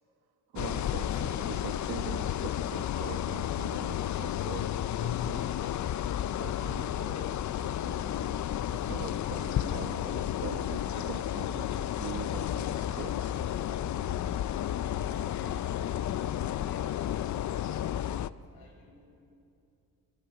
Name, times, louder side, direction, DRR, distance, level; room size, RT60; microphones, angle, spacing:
voice 1, 0.5-5.6 6.4-8.4 8.7-13.4, right 9 dB, 75° right, 4 dB, 1.4 m, -43 dB
sound 1, 0.6-18.3, left 11 dB, 50° left, 0.5 m, -32 dB
voice 2, 14.7-19.1, left 2 dB, 90° left, 0 dB, 6.9 m, -54 dB
28.5 x 25.0 x 5.0 m, 2.6 s
cardioid pair, 120°, 36 cm